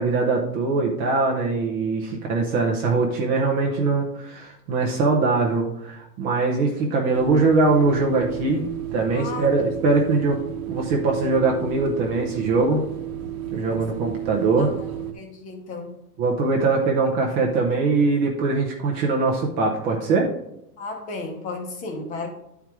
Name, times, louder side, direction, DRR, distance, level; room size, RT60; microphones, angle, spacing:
voice 1, 0.0-8.6 8.9-10.4 10.7-12.8 13.5-14.7 16.2-20.3, right 3 dB, 20° right, -1 dB, 0.6 m, -22 dB
sound 1, 7.1-15.1, right 11 dB, 60° right, 1.1 m, -32 dB
voice 2, 9.1-9.5 13.4-13.8 14.6-14.9 15.1-15.9 20.8-22.3, left 3 dB, 15° left, 3 dB, 0.9 m, -34 dB
9.9 x 4.6 x 3.5 m, 0.83 s
supercardioid pair, 160°, 48 cm